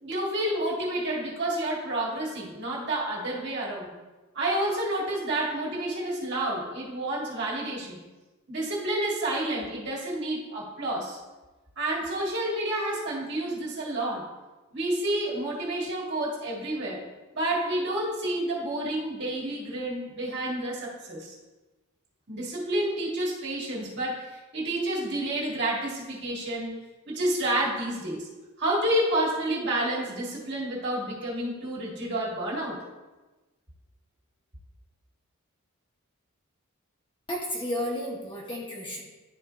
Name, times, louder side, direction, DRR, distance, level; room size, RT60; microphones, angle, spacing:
voice 1, 0.0-3.9 4.3-8.0 8.5-11.2 11.8-14.3 14.7-17.1 17.3-21.3 22.3-28.3 28.6-32.8, right 1 dB, 50° right, -5 dB, 1.8 m, -29 dB
voice 2, 37.3-39.0, equal, 25° left, -3 dB, 1.1 m, -32 dB
11.0 x 4.4 x 2.4 m, 1.1 s
head